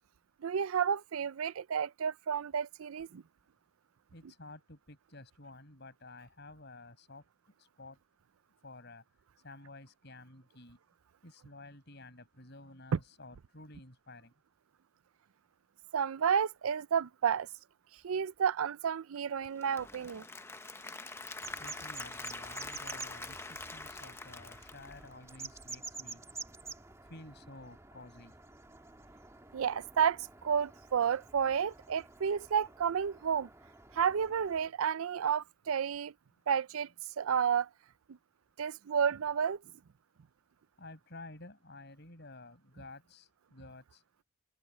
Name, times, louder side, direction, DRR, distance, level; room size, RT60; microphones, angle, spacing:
voice 1, 0.4-3.2 12.9-13.0 15.9-17.5 18.0-20.2 29.5-33.5 33.9-36.1 36.5-36.9 37.2-37.7 38.6-39.6, right 7 dB, 80° right, 0.4 m, -31 dB
voice 2, 4.1-7.2 7.8-8.0 8.6-9.0 9.4-10.8 11.2-14.3 20.9-21.0 21.5-26.2 27.1-28.3 40.8-44.0, left 2 dB, 55° left, 6.0 m, -52 dB
Applause / Crowd, 19.4-25.5, left 3 dB, 10° left, 0.8 m, -45 dB
sound 1, 21.4-34.7, right 4 dB, 15° right, 1.6 m, -50 dB
head